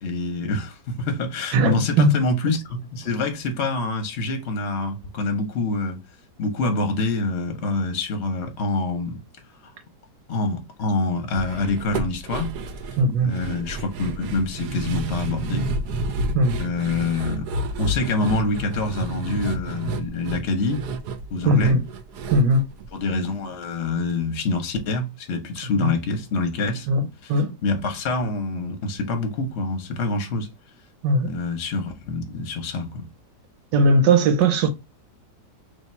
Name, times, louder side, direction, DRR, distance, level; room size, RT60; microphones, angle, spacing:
voice 1, 0.0-6.0 6.4-9.2 9.6-9.7 10.3-12.6 13.2-15.7 16.6-17.4 17.8-20.8 21.3-21.8 22.9-26.9 27.2-27.3 27.6-30.5 31.2-33.1, left 3 dB, 50° left, 0.9 m, -26 dB
voice 2, 1.5-2.1 13.0-13.3 16.3-16.6 21.4-21.8 22.3-22.6 25.8-25.9 26.9-27.6 31.0-31.3 33.7-34.7, right 2 dB, 90° right, 1.5 m, -19 dB
sound 1, 11.4-23.6 23.9-24.0 24.4-24.5, right 2 dB, 75° right, 1.2 m, -30 dB
3.3 x 2.8 x 4.2 m
omnidirectional pair, 1.9 m